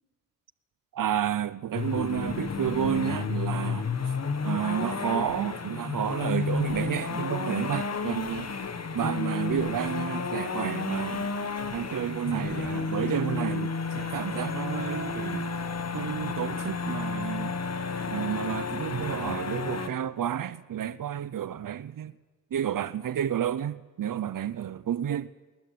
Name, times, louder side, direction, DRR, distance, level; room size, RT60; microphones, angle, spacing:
voice 1, 0.9-3.9 4.4-8.5 8.9-11.4 11.7-15.5 15.9-17.5 18.1-22.1 22.5-25.3, right 10 dB, 80° right, 0.7 m, -31 dB
sound 1, 1.7-19.9, left 5 dB, 50° left, 1.6 m, -32 dB
22.0 x 19.5 x 9.4 m
wide cardioid pair, 85°, 32 cm